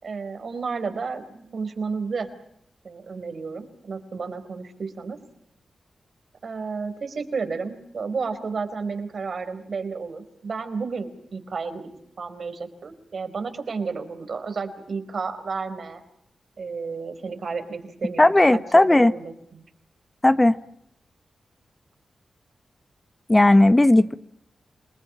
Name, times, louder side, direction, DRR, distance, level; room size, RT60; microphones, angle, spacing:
voice 1, 0.0-2.3 2.8-5.2 6.4-11.8 12.2-16.0 16.6-19.6, right 4 dB, 60° right, 4.4 m, -32 dB
voice 2, 18.2-19.1 20.2-20.5 23.3-24.1, left 1 dB, 20° left, 1.0 m, -16 dB
28.0 x 19.5 x 8.8 m
cardioid pair, 75°, 0 cm